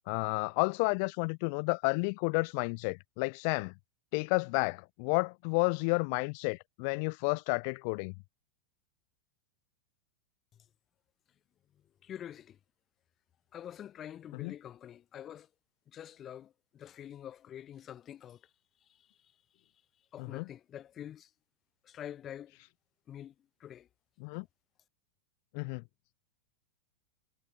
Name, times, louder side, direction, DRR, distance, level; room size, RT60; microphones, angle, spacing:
voice 1, 0.1-3.7 4.1-8.1 14.4-14.5 20.2-20.4 24.2-24.4 25.5-25.8, left 36 dB, 45° left, 0.7 m, -31 dB
voice 2, 11.7-12.6 13.5-15.5 15.9-18.5 18.8-19.7 20.1-21.3 21.8-22.6 23.1-23.9, left 10 dB, 30° left, 7.2 m, -47 dB
figure-of-eight pair, 90°, 0 cm